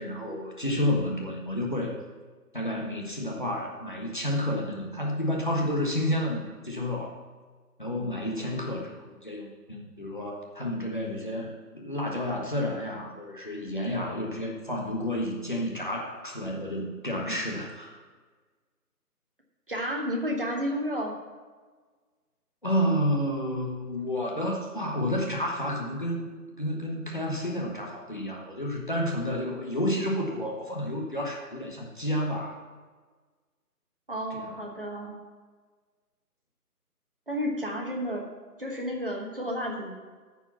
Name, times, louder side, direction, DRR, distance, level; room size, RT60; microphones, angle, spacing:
voice 1, 0.0-1.9 2.5-7.1 7.8-18.0 22.6-26.3 26.6-32.6 34.3-34.5, left 1 dB, 30° left, -2 dB, 1.1 m, -30 dB
voice 2, 19.7-21.1 34.1-35.1 37.3-38.3 38.6-39.9, equal, 35° right, 0 dB, 1.3 m, -31 dB
13.0 x 4.9 x 5.7 m, 1.4 s
figure-of-eight pair, 175°, 48 cm